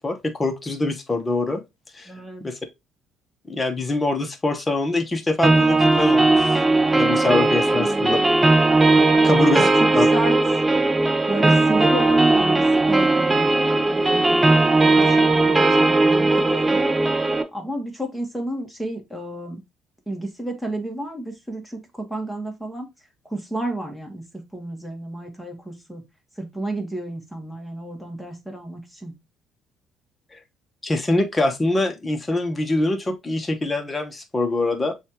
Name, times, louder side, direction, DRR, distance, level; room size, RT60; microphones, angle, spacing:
voice 1, 0.0-1.6 1.9-2.1 2.4-2.6 3.5-8.2 9.2-9.7 9.9-10.1 30.8-34.9, left 2 dB, 15° left, 1.0 m, -24 dB
voice 2, 2.1-2.4 7.7-8.3 9.2-10.3 11.3-13.5 13.9-17.0 17.5-19.6 20.1-22.9 23.2-26.0 26.4-29.1, right 1 dB, ahead, 1.3 m, -31 dB
sound 1, 5.4-17.4, right 2 dB, 15° right, 0.6 m, -18 dB
7.0 x 2.4 x 3.0 m
cardioid pair, 125°, 0 cm